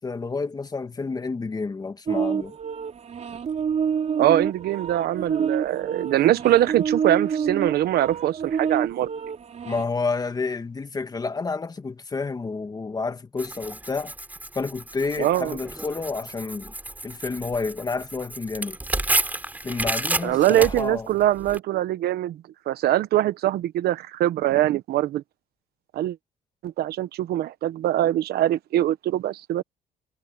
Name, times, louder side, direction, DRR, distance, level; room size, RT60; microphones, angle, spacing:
voice 1, 0.0-2.5 9.6-14.1 14.5-16.7 17.0-18.8 19.6-21.1, left 4 dB, 20° left, 1.6 m, -29 dB
sound 1, 2.1-9.8, right 7 dB, 40° right, 4.0 m, -28 dB
voice 2, 4.2-9.1 15.2-15.6 20.2-25.2 25.9-26.2 26.6-29.6, right 13 dB, 70° right, 1.2 m, -23 dB
Tearing, 13.4-21.6, right 2 dB, 10° right, 4.7 m, -31 dB
cardioid pair, 110°, 17 cm